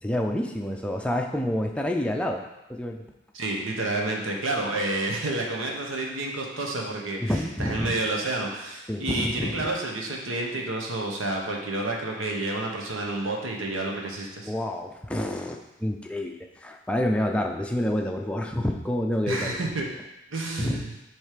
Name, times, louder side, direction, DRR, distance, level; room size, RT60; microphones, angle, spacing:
voice 1, 0.0-2.4 2.7-3.0 7.2-7.9 8.9-9.7 14.5-19.6 20.6-20.8, left 1 dB, 5° left, 2 dB, 0.4 m, -28 dB
voice 2, 3.3-7.2 7.6-14.5 19.3-19.9 20.3-20.9, right 2 dB, 85° right, 0 dB, 1.2 m, -29 dB
7.6 x 3.2 x 5.0 m, 0.95 s
head